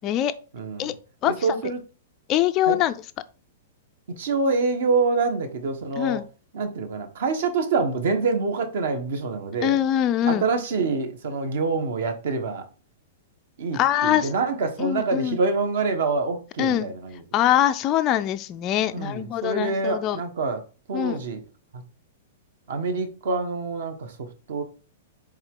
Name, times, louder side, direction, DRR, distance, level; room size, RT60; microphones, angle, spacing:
voice 1, 0.5-0.9 1.2-1.8 2.7-2.8 4.2-6.2 6.5-9.8 10.3-12.6 13.6-17.2 18.8-20.6 20.9-21.4 21.7-21.8 22.7-24.6, right 4 dB, 55° right, 1.4 m, -26 dB
voice 2, 2.3-2.9 6.0-6.2 9.6-10.5 13.7-14.3 14.8-15.4 16.6-16.9 17.3-20.2 20.9-21.2, left 11 dB, 20° left, 0.3 m, -23 dB
8.0 x 3.5 x 3.8 m
supercardioid pair, 180°, 0 cm